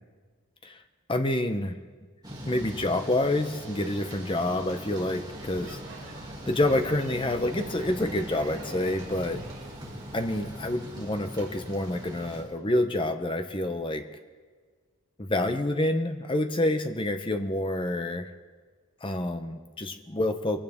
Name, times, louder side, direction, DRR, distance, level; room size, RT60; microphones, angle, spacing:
voice 1, 1.1-1.8 2.5-5.8 6.5-9.4 10.1-14.1 15.2-18.3 19.0-20.6, left 1 dB, 25° left, 7 dB, 0.8 m, -28 dB
Thunder / Rain, 2.2-12.4, equal, 20° right, 2.5 m, -41 dB
Speech / Shout / Subway metro underground, 5.3-10.6, right 3 dB, 70° right, 2.4 m, -49 dB
22.5 x 16.0 x 3.6 m, 1.5 s
head